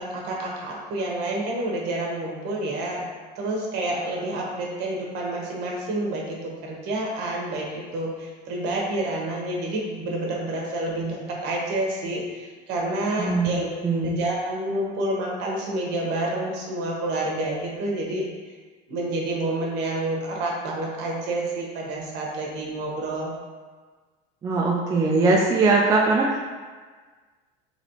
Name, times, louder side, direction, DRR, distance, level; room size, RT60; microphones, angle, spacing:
voice 1, 0.0-3.0 3.4-13.7 14.0-18.3 18.9-23.3, right 1 dB, 55° right, -2 dB, 1.0 m, -28 dB
voice 2, 13.2-13.5 13.8-14.2 24.4-26.4, right 3 dB, 15° right, -2 dB, 0.3 m, -20 dB
4.0 x 3.0 x 2.9 m, 1.4 s
cardioid pair, 140°, 21 cm